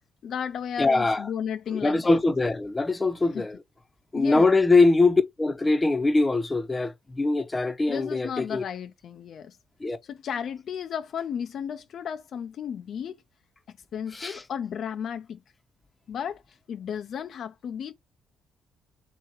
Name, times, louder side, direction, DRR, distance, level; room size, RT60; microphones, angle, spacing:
voice 1, 0.2-2.2 3.3-3.5 4.1-4.5 7.9-9.6 10.0-13.2 13.7-15.4 16.1-17.9, left 8 dB, 65° left, 0.4 m, -34 dB
voice 2, 0.8-1.2 1.7-3.6 4.1-8.6 9.8-10.0 14.1-14.4, left 3 dB, 20° left, 0.7 m, -22 dB
3.4 x 3.0 x 4.5 m
cardioid pair, 90°, 0 cm